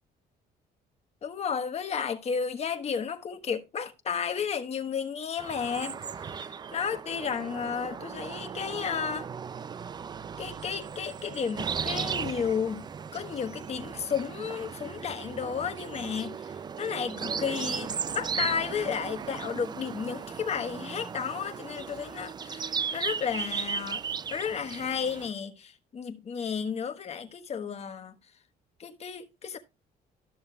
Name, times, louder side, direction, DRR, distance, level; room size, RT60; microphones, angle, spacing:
voice 1, 1.2-6.0 6.3-9.3 10.4-12.9 13.1-24.0 24.3-28.2 28.8-29.6, left 6 dB, 40° left, 1.2 m, -33 dB
sound 1, 5.4-25.3, right 6 dB, 25° right, 0.3 m, -36 dB
13.0 x 6.7 x 2.3 m
cardioid pair, 110°, 17 cm